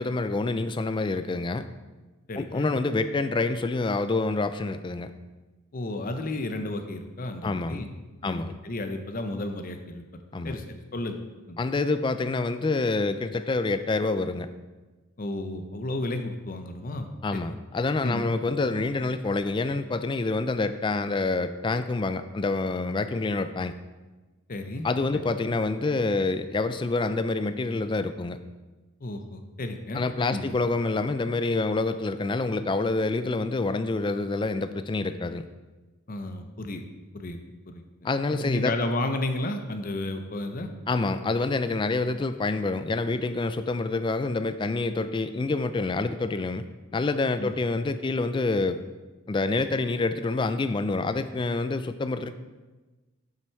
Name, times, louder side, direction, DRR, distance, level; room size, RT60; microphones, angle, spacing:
voice 1, 0.0-1.6 2.4-5.1 7.4-7.8 8.2-8.5 10.3-10.6 11.6-14.5 17.2-23.7 24.8-28.4 29.9-35.5 38.0-38.7 40.9-46.6 46.9-48.8 49.3-52.3, left 3 dB, 20° left, 11 dB, 0.3 m, -27 dB
voice 2, 2.3-2.7 5.7-7.9 8.2-10.0 10.4-11.2 11.5-11.6 15.2-17.5 18.0-18.3 24.5-24.9 25.4-25.5 29.0-30.0 30.3-30.4 36.1-36.8 37.1-37.4 37.7-37.8 38.3-40.7 47.4-47.5, left 1 dB, 40° left, 6 dB, 0.7 m, -32 dB
7.7 x 6.1 x 4.6 m, 1.2 s
head